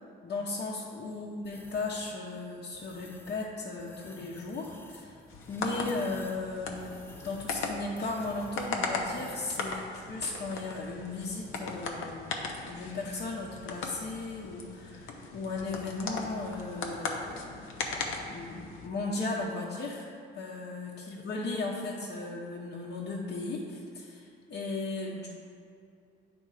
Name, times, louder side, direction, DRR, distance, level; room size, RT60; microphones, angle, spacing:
voice 1, 0.2-5.1 5.5-17.6 17.9-20.1 20.3-25.3, left 3 dB, 55° left, -5 dB, 0.9 m, -36 dB
sound 1, 1.4-2.2 2.7-3.5 3.8-9.7, left 2 dB, 10° left, 0.4 m, -52 dB
sound 2, 5.3-18.9, left 4 dB, 85° left, 0.8 m, -38 dB
9.0 x 3.5 x 4.9 m, 2.6 s
cardioid pair, 90°, 20 cm